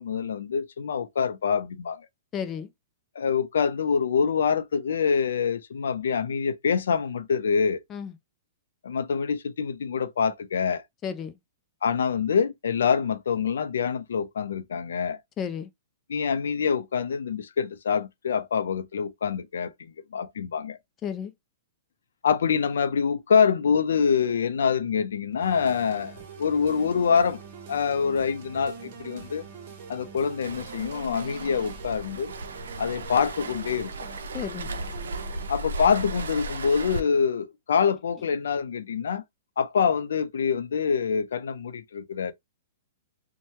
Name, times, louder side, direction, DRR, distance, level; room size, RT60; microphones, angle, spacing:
voice 1, 0.0-2.0 3.2-7.8 8.8-10.8 11.8-15.2 16.1-20.8 22.2-27.4 27.7-29.5 29.9-32.3 32.8-33.9 35.5-39.2 39.6-42.3, left 6 dB, 85° left, 0.5 m, -25 dB
voice 2, 2.3-2.7 7.9-8.1 11.0-11.4 15.4-15.7 21.0-21.3 34.3-34.7, left 7 dB, 25° left, 0.4 m, -32 dB
sound 1, 25.4-35.5, right 5 dB, 50° right, 0.8 m, -43 dB
Waves surf, 30.4-37.0, right 2 dB, 90° right, 0.5 m, -36 dB
2.8 x 2.2 x 3.0 m
hypercardioid pair, 140°, 0 cm